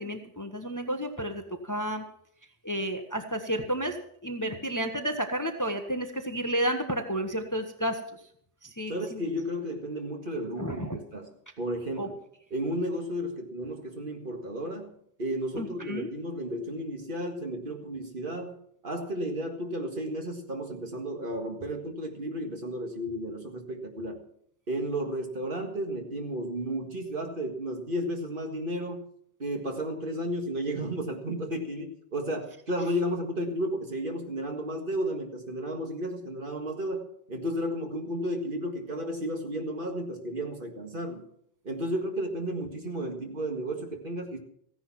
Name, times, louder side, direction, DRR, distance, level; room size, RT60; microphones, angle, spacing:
voice 1, 0.0-2.0 2.6-4.0 4.2-8.0 8.6-9.2 10.6-11.0 12.0-12.1 15.5-16.1, equal, 15° left, 6 dB, 1.0 m, -31 dB
voice 2, 8.9-12.2 12.5-18.6 18.8-24.3 24.7-29.0 29.4-41.2 41.6-44.4, equal, 45° right, 3 dB, 1.9 m, -33 dB
15.5 x 10.5 x 5.9 m, 0.68 s
omnidirectional pair, 1.2 m